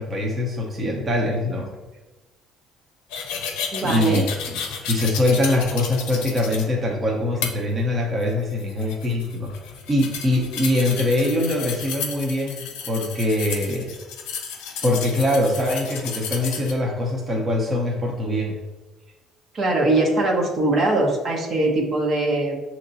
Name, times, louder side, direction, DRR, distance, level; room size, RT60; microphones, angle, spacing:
voice 1, 0.0-1.7 3.8-4.6 4.9-9.5 9.9-13.9 14.8-18.6, left 1 dB, 30° right, -1 dB, 0.9 m, -23 dB
sound 1, 3.1-6.7 7.4-7.5 8.2-16.7, left 6 dB, 85° left, 0.6 m, -32 dB
voice 2, 3.7-4.2 19.5-22.6, right 2 dB, 55° right, -1 dB, 1.1 m, -21 dB
6.4 x 3.0 x 2.7 m, 1.1 s
supercardioid pair, 75°, 0 cm